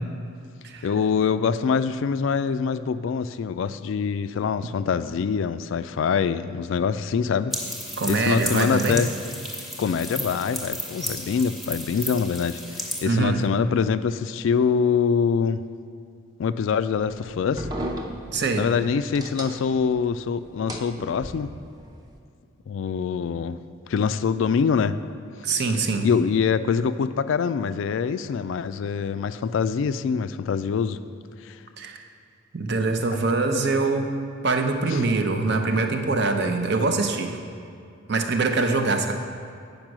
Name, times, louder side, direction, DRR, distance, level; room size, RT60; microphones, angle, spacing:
voice 1, 0.8-7.5 8.1-9.1 9.8-15.6 16.4-17.7 18.6-21.5 22.7-23.6 23.9-24.9 26.0-31.0 31.4-31.6 34.9-35.0, left 6 dB, 70° left, 13 dB, 0.3 m, -24 dB
sound 1, 7.5-13.0, left 1 dB, ahead, 1.0 m, -33 dB
voice 2, 8.0-9.0 13.1-13.4 18.3-18.7 25.4-26.1 31.8-32.0 32.5-34.1 34.4-37.4 38.1-39.1, right 3 dB, 55° right, 5 dB, 0.7 m, -23 dB
sound 2, 16.9-20.1 20.4-21.8, equal, 20° right, 0.6 m, -36 dB
8.9 x 5.3 x 6.1 m, 2.4 s
head